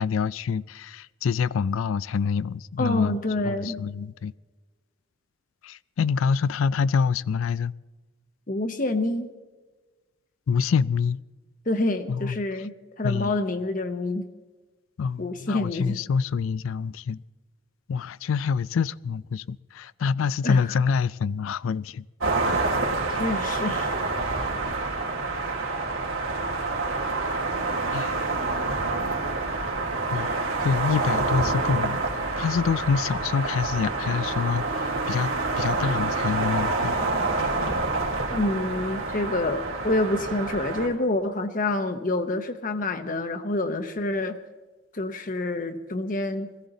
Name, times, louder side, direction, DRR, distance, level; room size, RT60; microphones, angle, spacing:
voice 1, 0.0-3.2 3.4-4.3 5.6-7.7 10.5-11.2 12.1-12.4 13.0-13.3 15.0-17.2 17.9-22.0 22.5-22.7 27.9-28.1 30.1-35.3 35.6-37.0, left 6 dB, 75° left, 0.4 m, -26 dB
voice 2, 2.8-3.8 8.5-9.3 11.7-14.3 15.2-16.0 20.4-20.8 23.2-23.9 38.3-44.4 44.9-46.5, left 2 dB, 40° left, 0.9 m, -27 dB
sound 1, 22.2-40.9, right 3 dB, 80° right, 3.1 m, -27 dB
21.5 x 15.0 x 3.9 m
head